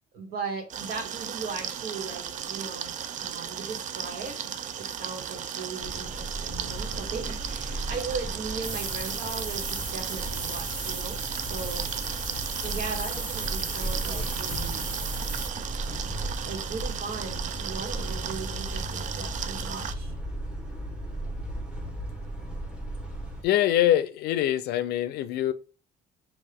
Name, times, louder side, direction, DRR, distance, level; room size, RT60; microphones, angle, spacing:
voice 1, 0.1-4.4 4.8-11.8 12.6-14.9 16.4-20.1, right 4 dB, 65° right, 1.6 m, -38 dB
sound 1, 0.7-19.9, right 8 dB, 45° right, 0.4 m, -36 dB
sound 2, 5.8-23.4, right 1 dB, 5° right, 1.0 m, -36 dB
sound 3, 8.6-15.5, right 3 dB, 30° right, 1.0 m, -36 dB
voice 2, 23.4-25.5, left 12 dB, 75° left, 0.5 m, -24 dB
5.3 x 2.5 x 3.5 m
cardioid pair, 110°, 17 cm